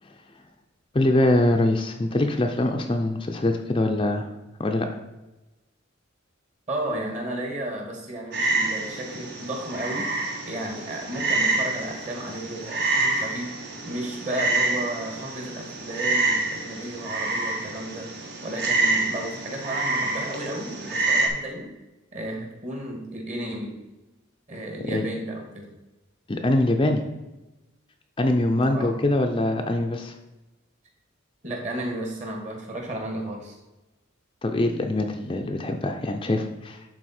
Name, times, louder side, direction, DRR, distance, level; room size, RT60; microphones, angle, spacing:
voice 1, 0.9-4.3 4.6-4.9 24.8-25.1 26.3-27.0 28.2-30.1 34.4-36.8, left 1 dB, 25° left, 4 dB, 0.5 m, -23 dB
voice 2, 6.7-10.1 10.4-13.5 13.8-18.1 18.4-21.7 22.1-23.7 24.5-25.7 28.7-29.0 31.4-33.6, right 1 dB, 35° right, 1 dB, 1.7 m, -33 dB
Frog, 8.3-21.3, right 3 dB, 55° right, 1.3 m, -27 dB
11.0 x 4.1 x 4.3 m, 1.0 s
head